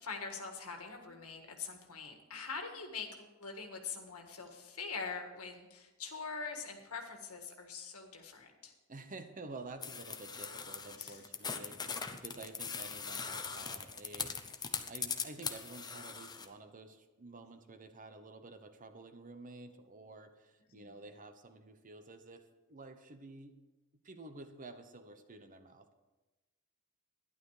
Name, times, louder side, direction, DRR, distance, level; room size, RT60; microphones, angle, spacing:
voice 1, 0.0-8.7 11.0-11.2 20.7-20.9, left 5 dB, 75° left, 4 dB, 1.8 m, -43 dB
voice 2, 8.9-11.9 12.1-14.5 14.9-23.6 24.0-25.9, right 2 dB, 40° right, 9 dB, 1.0 m, -50 dB
sound 1, 9.8-16.5, left 5 dB, 20° left, 0.8 m, -40 dB
12.0 x 11.0 x 4.9 m, 1.1 s
head